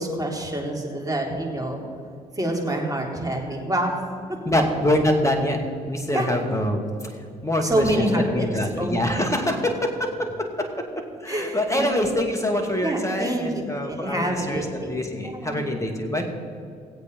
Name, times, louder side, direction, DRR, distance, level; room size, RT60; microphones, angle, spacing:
voice 1, 0.0-1.8 2.4-4.0 6.1-6.3 7.6-8.5 8.8-9.0 11.3-11.9 12.8-15.5, right 1 dB, 20° right, 0 dB, 3.4 m, -27 dB
voice 2, 4.5-5.6 5.9-6.9 7.4-8.1 8.3-10.3 10.6-10.8 11.2-16.2, left 1 dB, 15° left, 3 dB, 2.5 m, -25 dB
18.5 x 8.1 x 5.5 m, 2.3 s
hypercardioid pair, 45°, 19 cm